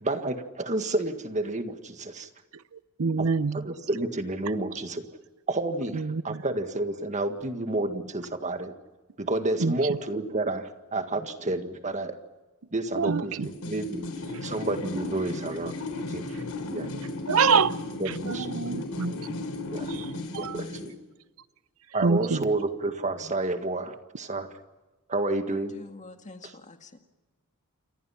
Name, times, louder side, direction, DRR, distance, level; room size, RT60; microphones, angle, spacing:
voice 1, 0.0-2.3 3.2-3.3 3.5-5.0 5.5-8.7 9.2-12.1 12.7-13.3 13.7-14.1 14.4-15.7 16.1-16.4 16.7-16.9 18.0-18.5 19.7-19.9 20.4-20.9 21.9-24.5 25.1-25.7, right 2 dB, 35° right, 7 dB, 1.8 m, -30 dB
voice 2, 2.5-3.7 5.9-6.4 9.6-10.0 12.9-13.5 14.3-14.5 16.7-17.8 18.0-19.2 19.9-20.6 22.0-22.5, right 5 dB, 65° right, 15 dB, 0.7 m, -27 dB
sound 1, 13.4-20.9, left 2 dB, 85° left, 3.9 m, -35 dB
voice 3, 25.5-27.0, left 2 dB, 35° left, 6 dB, 1.9 m, -46 dB
29.0 x 24.5 x 5.8 m, 1.2 s
head